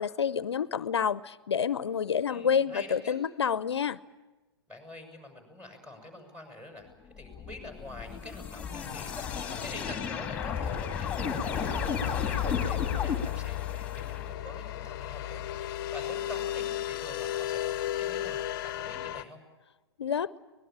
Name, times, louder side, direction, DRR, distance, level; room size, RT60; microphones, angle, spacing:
voice 1, 0.0-4.0 20.0-20.3, left 7 dB, 75° left, 17 dB, 0.7 m, -28 dB
voice 2, 2.3-3.2 4.7-19.4, left 2 dB, 10° right, 5 dB, 6.4 m, -46 dB
sound 1, 7.2-14.3, left 6 dB, 10° left, 2.5 m, -34 dB
sound 2, 8.8-19.2, left 13 dB, 45° left, 0.9 m, -35 dB
24.5 x 20.0 x 8.8 m, 1.1 s
figure-of-eight pair, 120°, 14 cm